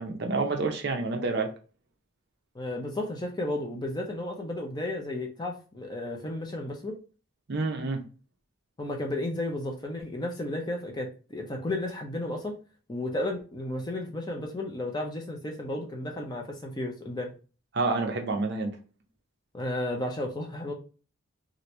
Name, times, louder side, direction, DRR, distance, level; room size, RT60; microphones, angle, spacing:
voice 1, 0.0-1.5 7.5-8.0 17.7-18.8, right 3 dB, 50° right, 0.6 m, -28 dB
voice 2, 2.5-7.0 8.8-12.6 12.9-17.3 19.5-20.7, left 1 dB, 20° left, 0.5 m, -33 dB
2.9 x 2.5 x 3.0 m
head